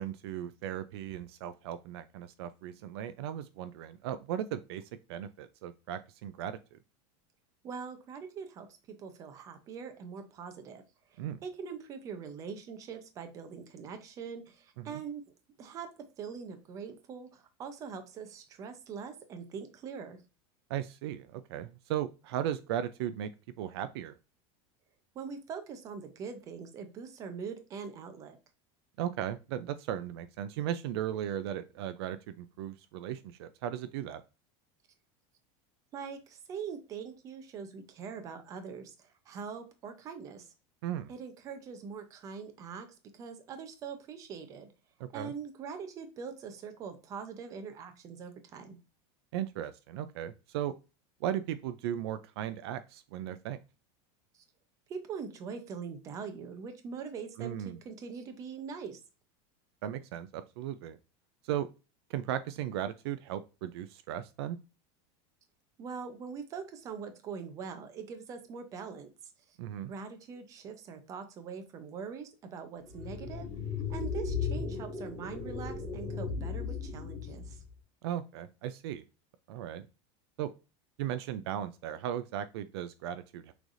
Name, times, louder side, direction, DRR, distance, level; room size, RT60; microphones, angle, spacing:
voice 1, 0.0-4.8 5.1-6.8 11.2-11.4 14.8-15.0 20.7-23.3 23.6-24.1 29.0-34.2 40.8-41.1 45.0-45.3 49.3-50.7 51.2-53.6 57.4-57.8 59.8-61.0 61.4-61.7 62.1-64.6 69.6-69.9 78.0-79.0 79.5-79.8 80.4-80.5 81.0-83.5, right 11 dB, 65° right, 12 dB, 0.4 m, -36 dB
voice 2, 7.6-8.7 9.0-10.8 11.1-15.2 15.6-15.9 16.2-20.2 25.1-28.4 35.9-40.5 41.1-42.9 43.1-44.7 45.1-48.8 54.3-54.4 54.9-59.0 65.8-69.1 69.5-69.6 69.9-73.5 73.9-77.6, right 6 dB, 20° right, 8 dB, 0.6 m, -43 dB
sound 1, 72.9-77.7, left 5 dB, 15° left, 1.4 m, -36 dB
6.2 x 3.3 x 2.5 m, 0.31 s
supercardioid pair, 180°, 15 cm